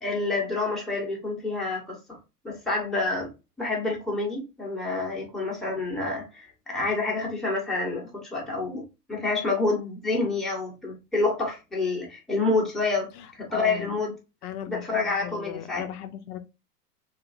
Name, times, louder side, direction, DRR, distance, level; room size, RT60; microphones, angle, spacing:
voice 1, 0.0-2.2 2.4-3.3 3.6-8.8 9.1-13.1 13.4-14.1 14.7-15.8, left 3 dB, ahead, 0.7 m, -28 dB
voice 2, 13.2-13.9 14.4-16.4, left 10 dB, 70° left, 0.6 m, -38 dB
2.8 x 2.4 x 2.4 m
hypercardioid pair, 115°, 48 cm